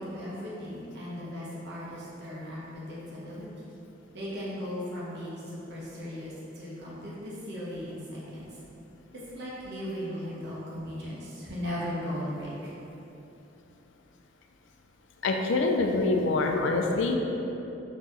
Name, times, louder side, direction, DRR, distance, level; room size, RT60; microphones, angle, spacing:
voice 1, 0.0-3.7 4.1-8.5 9.3-12.7, equal, 65° right, -7 dB, 1.1 m, -37 dB
voice 2, 15.2-17.2, left 3 dB, 75° left, 2 dB, 0.4 m, -25 dB
4.4 x 3.1 x 3.0 m, 3.0 s
head